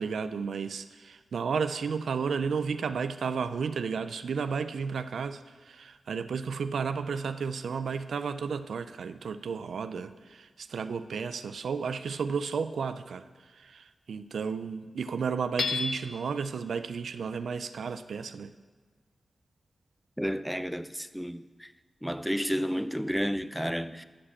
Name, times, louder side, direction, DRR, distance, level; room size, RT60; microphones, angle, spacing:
voice 1, 0.0-13.3 13.5-18.5, right 5 dB, 85° right, 0.4 m, -33 dB
Hammer / Chink clink, 15.6-16.4, left 4 dB, 85° left, 0.8 m, -31 dB
voice 2, 20.2-21.7 22.0-24.0, equal, ahead, 0.6 m, -31 dB
13.0 x 5.1 x 7.3 m
cardioid pair, 40°, 0 cm